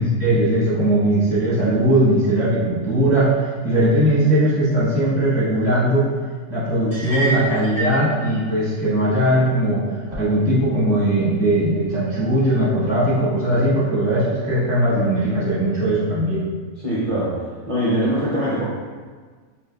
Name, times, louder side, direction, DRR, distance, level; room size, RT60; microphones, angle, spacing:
voice 1, 0.0-3.3 3.6-6.1 6.5-9.8 10.2-16.4, right 1 dB, ahead, -10 dB, 0.9 m, -19 dB
sound 1, 6.9-8.0, right 1 dB, 60° left, 1.6 m, -26 dB
voice 2, 16.8-17.4 17.7-18.6, equal, 45° right, -8 dB, 0.4 m, -22 dB
5.8 x 2.5 x 2.3 m, 1.5 s
omnidirectional pair, 1.6 m